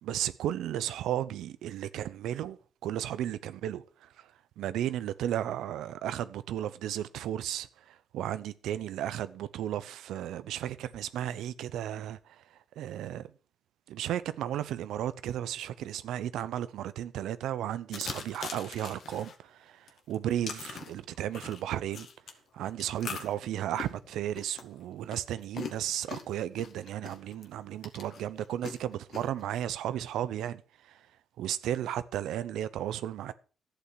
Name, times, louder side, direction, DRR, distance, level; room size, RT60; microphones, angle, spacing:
voice 1, 0.0-2.6 2.8-12.4 12.8-13.3 13.9-22.1 22.5-31.0 31.4-33.3, right 11 dB, 90° right, 0.7 m, -34 dB
sound 1, 17.9-19.4 19.9-22.3 22.8-27.5 27.8-29.4, left 6 dB, 65° left, 1.9 m, -42 dB
11.5 x 8.3 x 6.3 m
cardioid pair, 80°, 0 cm